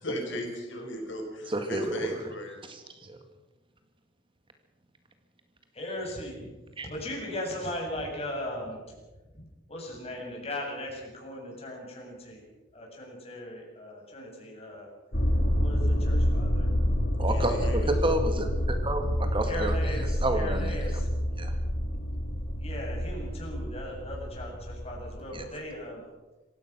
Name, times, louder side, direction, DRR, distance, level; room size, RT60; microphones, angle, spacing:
voice 1, 0.0-2.6 17.3-17.9, equal, 70° left, 2 dB, 5.2 m, -36 dB
voice 2, 1.5-2.2 2.6-3.2 6.8-6.9 17.2-19.7 20.2-20.8 21.4-21.5 25.3-25.4, right 1 dB, 30° right, 6 dB, 1.9 m, -30 dB
voice 3, 5.7-6.5 6.9-8.8 9.3-9.4 9.7-12.4 12.7-14.9 15.6-16.7 17.3-17.5 19.0-19.1 19.5-21.1 22.6-26.0, left 1 dB, 35° left, -1 dB, 7.6 m, -38 dB
sound 1, 15.1-25.4, equal, 55° left, 3.2 m, -28 dB
27.0 x 16.5 x 6.2 m, 1.2 s
head